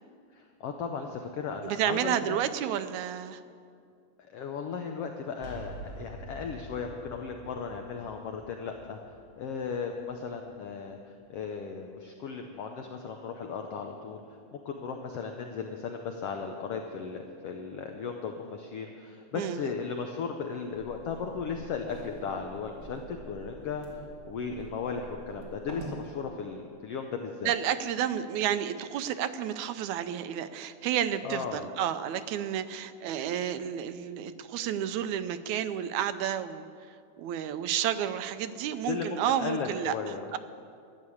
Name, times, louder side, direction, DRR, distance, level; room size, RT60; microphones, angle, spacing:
voice 1, 0.3-2.2 4.3-9.0 9.4-14.2 14.5-27.5 31.2-31.7 38.9-40.3, left 5 dB, 70° left, 4 dB, 1.5 m, -36 dB
voice 2, 1.6-3.4 19.3-19.6 27.4-36.7 37.2-40.0 40.3-40.4, right 10 dB, 80° right, 11 dB, 1.9 m, -31 dB
sound 1, 5.4-11.1, right 1 dB, 30° left, 2.8 m, -47 dB
sound 2, 20.7-26.0, right 2 dB, 25° right, 2.7 m, -46 dB
13.0 x 11.0 x 8.5 m, 2.4 s
omnidirectional pair, 3.5 m